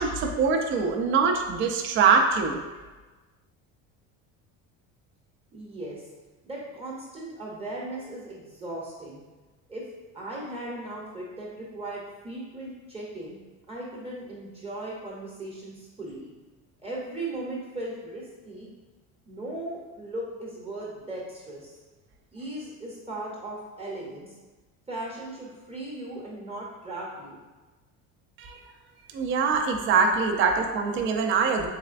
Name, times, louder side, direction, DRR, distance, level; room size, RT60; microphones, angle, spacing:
voice 1, 0.0-2.6 28.4-28.6 29.1-31.7, right 5 dB, 35° right, 3 dB, 0.4 m, -23 dB
voice 2, 5.5-6.0 6.4-9.2 9.7-9.8 10.1-13.4 13.7-16.3 16.8-18.7 19.3-21.7 22.3-24.3 24.9-27.4, right 1 dB, 15° right, -5 dB, 0.8 m, -37 dB
4.1 x 3.2 x 2.5 m, 1.2 s
cardioid pair, 130°, 36 cm